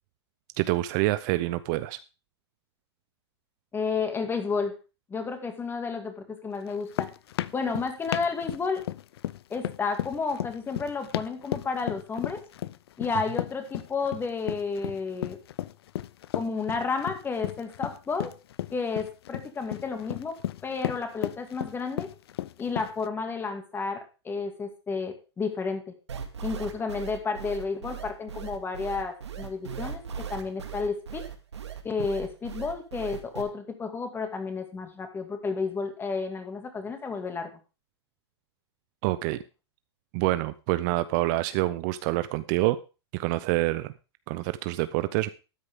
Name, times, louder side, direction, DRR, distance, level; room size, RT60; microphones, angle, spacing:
voice 1, 0.6-2.0 39.0-39.4 40.1-42.8 43.1-43.9 44.3-45.3, right 18 dB, 40° right, 14 dB, 0.6 m, -26 dB
voice 2, 3.7-4.8 5.1-7.1 7.5-8.9 9.5-12.4 13.0-15.4 16.3-18.3 18.7-20.4 20.6-22.1 22.6-25.8 26.4-31.2 31.8-37.5, left 4 dB, 15° left, 6 dB, 2.3 m, -31 dB
sound 1, 6.7-23.1, left 13 dB, 65° left, 0.6 m, -34 dB
sound 2, 26.1-33.4, right 8 dB, 85° right, 2.1 m, -38 dB
13.0 x 9.6 x 3.7 m, 0.31 s
hypercardioid pair, 120°, 14 cm